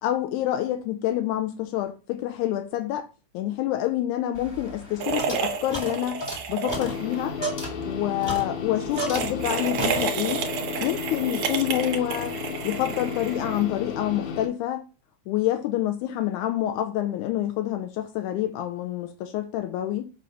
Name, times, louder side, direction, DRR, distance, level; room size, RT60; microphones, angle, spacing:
voice 1, 0.0-3.1 3.3-6.2 6.5-7.4 7.9-10.4 10.8-12.4 12.6-14.8 15.3-20.0, left 13 dB, 90° left, 2.1 m, -27 dB
sound 1, 4.3-9.5 9.8-10.4, equal, 30° left, 0.4 m, -35 dB
sound 2, 5.0-7.2 7.5-7.7 8.8-13.8, right 6 dB, 70° right, 1.4 m, -31 dB
sound 3, 6.7-14.5, left 5 dB, 65° left, 2.1 m, -34 dB
7.4 x 2.6 x 5.6 m
omnidirectional pair, 3.5 m